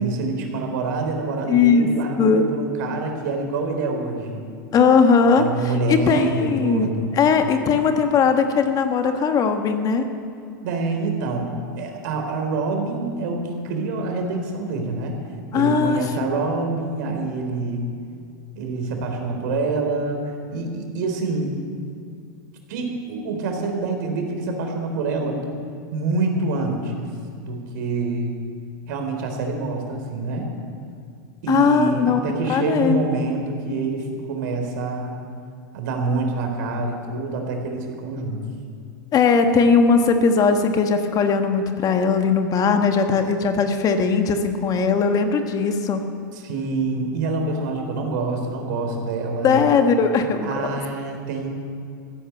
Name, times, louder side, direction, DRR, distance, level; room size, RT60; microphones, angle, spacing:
voice 1, 0.0-4.5 5.3-7.1 10.6-11.5 11.8-15.2 15.5-17.9 18.6-21.5 22.7-25.4 25.9-27.1 27.4-28.4 28.9-30.5 31.4-35.1 35.7-38.4 46.3-49.6 50.4-51.5, right 3 dB, 65° right, 3 dB, 3.7 m, -26 dB
voice 2, 1.5-1.9 2.2-2.4 4.7-5.4 5.9-10.1 15.5-16.0 31.5-32.2 32.5-33.0 39.1-46.1 49.4-50.5, left 5 dB, 35° left, 6 dB, 1.6 m, -19 dB
15.0 x 11.0 x 8.6 m, 2.3 s
hypercardioid pair, 105°, 10 cm